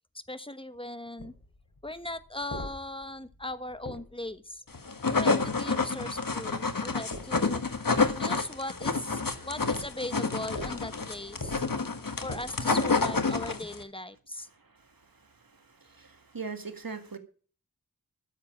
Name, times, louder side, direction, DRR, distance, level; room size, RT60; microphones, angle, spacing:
voice 1, 0.3-1.3 1.8-4.6 5.1-7.6 8.2-11.6 12.2-14.5, left 1 dB, 15° left, 12 dB, 1.1 m, -39 dB
sound 1, 1.2-4.6 7.0-13.7, left 2 dB, 90° left, 3.4 m, -45 dB
sound 2, 4.7-13.8, left 4 dB, 70° left, 1.5 m, -29 dB
voice 2, 15.8-17.2, right 5 dB, 75° right, 7 dB, 1.9 m, -39 dB
13.0 x 7.5 x 7.3 m, 0.41 s
wide cardioid pair, 45°, 35 cm